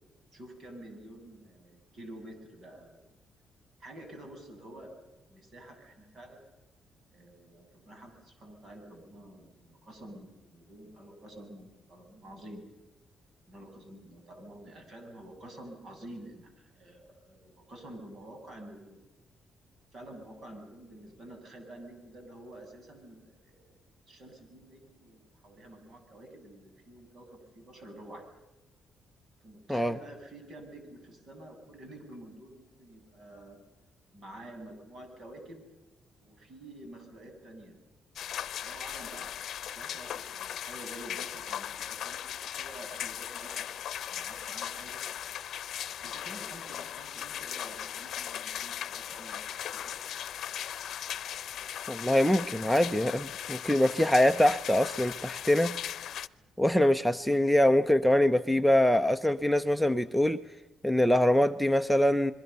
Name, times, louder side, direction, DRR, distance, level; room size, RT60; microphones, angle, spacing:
voice 1, 0.3-3.0 3.8-4.9 5.3-6.4 7.1-12.6 13.5-19.0 19.9-23.7 24.1-28.3 29.4-33.6 34.1-35.6 36.2-37.8 38.2-39.3 39.7-43.8 44.1-45.0 46.0-50.0, right 1 dB, 50° right, 5 dB, 7.6 m, -49 dB
sound 1, 38.2-56.3, left 10 dB, 65° left, 0.8 m, -38 dB
voice 2, 51.9-55.8 56.6-60.4 60.8-62.3, left 1 dB, ahead, 7 dB, 0.7 m, -24 dB
27.5 x 22.0 x 6.9 m, 1.0 s
cardioid pair, 110°, 0 cm